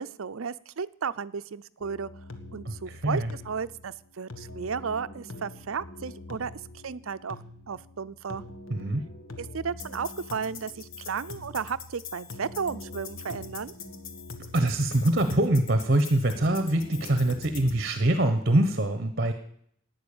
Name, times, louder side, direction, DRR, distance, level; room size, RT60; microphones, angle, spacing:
voice 1, 0.0-2.1 2.5-8.4 9.4-13.7, right 6 dB, 80° right, 15 dB, 0.6 m, -34 dB
sound 1, 1.8-17.8, left 3 dB, 75° left, 1.5 m, -43 dB
voice 2, 2.9-3.3 8.7-9.0 14.5-19.3, right 1 dB, 50° right, 9 dB, 1.1 m, -24 dB
11.5 x 9.3 x 8.7 m, 0.69 s
head